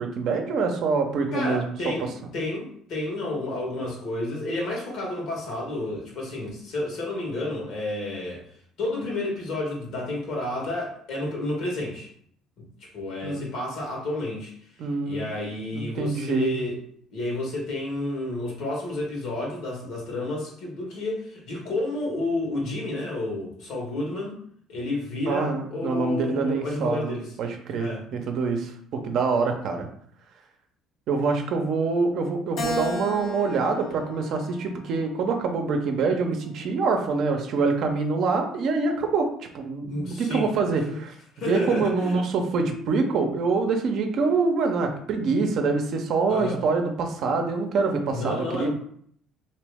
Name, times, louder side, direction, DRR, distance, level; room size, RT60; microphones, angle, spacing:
voice 1, 0.0-1.6 13.2-13.4 14.8-15.3 15.7-16.5 25.3-29.9 31.1-41.1 41.5-48.7, right 4 dB, 60° right, 4 dB, 0.7 m, -25 dB
voice 2, 1.3-8.4 8.8-12.1 12.6-12.7 12.9-14.5 15.0-16.8 17.1-24.4 24.7-27.3 27.8-28.0 39.8-40.5 41.3-42.2 46.3-46.6 48.1-48.7, left 2 dB, 70° left, -1 dB, 1.4 m, -30 dB
Keyboard (musical), 32.6-35.1 35.7-36.9, left 2 dB, 55° left, 0.7 m, -35 dB
3.0 x 2.8 x 3.5 m, 0.63 s
cardioid pair, 110°, 0 cm